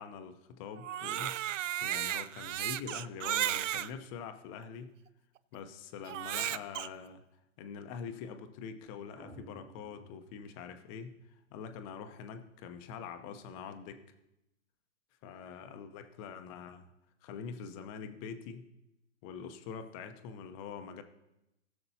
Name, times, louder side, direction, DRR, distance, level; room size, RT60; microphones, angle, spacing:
voice 1, 0.0-1.5 1.8-4.9 5.5-7.2 7.6-11.2 11.5-14.0 15.2-16.9 17.2-18.7 19.2-21.0, left 6 dB, 25° left, 8 dB, 0.7 m, -44 dB
Crying sobbing, 0.8-3.9 4.6-4.7 6.1-6.9, right 12 dB, 70° right, 0.5 m, -34 dB
sound 1, 9.2-11.3, equal, 5° right, 0.4 m, -55 dB
20.0 x 6.8 x 2.7 m, 0.90 s
hypercardioid pair, 140°, 39 cm